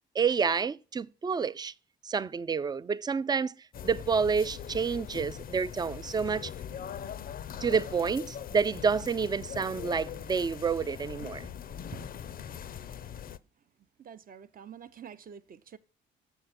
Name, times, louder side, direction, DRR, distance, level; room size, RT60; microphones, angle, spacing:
voice 1, 0.2-1.7 2.0-3.5 3.8-6.5 7.6-11.5, right 5 dB, 20° right, 0.3 m, -29 dB
sound 1, 3.7-13.4, left 9 dB, 45° left, 0.5 m, -41 dB
voice 2, 14.0-15.8, right 7 dB, 45° right, 0.7 m, -47 dB
7.0 x 6.5 x 4.1 m
cardioid pair, 90°, 20 cm